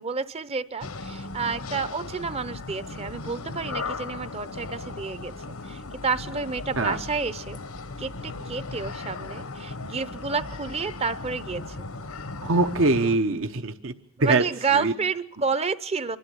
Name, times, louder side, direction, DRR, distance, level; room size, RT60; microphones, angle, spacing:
voice 1, 0.0-7.6 8.0-11.8 14.2-16.2, right 5 dB, 30° right, 15 dB, 0.8 m, -30 dB
sound 1, 0.8-13.2, left 3 dB, 90° left, 1.3 m, -37 dB
voice 2, 12.4-13.9 14.2-14.5 14.7-14.9, right 2 dB, 65° right, 7 dB, 1.0 m, -23 dB
26.0 x 12.5 x 9.6 m, 0.67 s
head